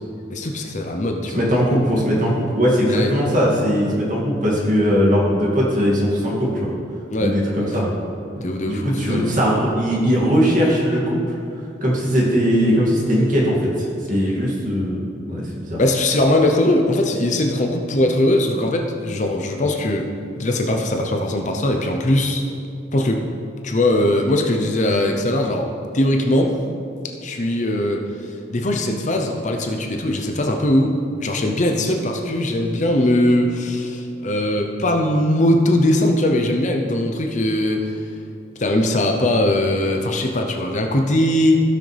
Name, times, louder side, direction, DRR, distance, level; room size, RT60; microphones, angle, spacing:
voice 1, 0.3-1.4 2.9-3.2 7.1-7.8 8.4-9.4 15.8-20.1 20.3-22.4 22.9-23.3 23.6-25.7 25.9-26.6 27.2-37.9 38.6-41.6, left 1 dB, 40° left, 3 dB, 0.7 m, -20 dB
voice 2, 1.3-6.7 7.2-7.9 8.7-11.2 11.8-13.7 14.1-15.8, equal, 45° right, -5 dB, 2.4 m, -19 dB
16.5 x 6.3 x 3.4 m, 2.4 s
head